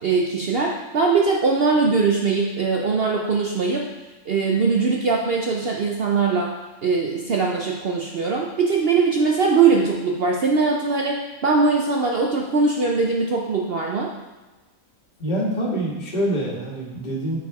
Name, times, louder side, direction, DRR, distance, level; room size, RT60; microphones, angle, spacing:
voice 1, 0.0-3.9 4.3-6.6 6.8-14.1, right 4 dB, 55° right, 0 dB, 0.7 m, -21 dB
voice 2, 15.2-17.4, right 1 dB, 30° left, -4 dB, 1.7 m, -25 dB
7.5 x 4.8 x 4.7 m, 1.2 s
omnidirectional pair, 1.5 m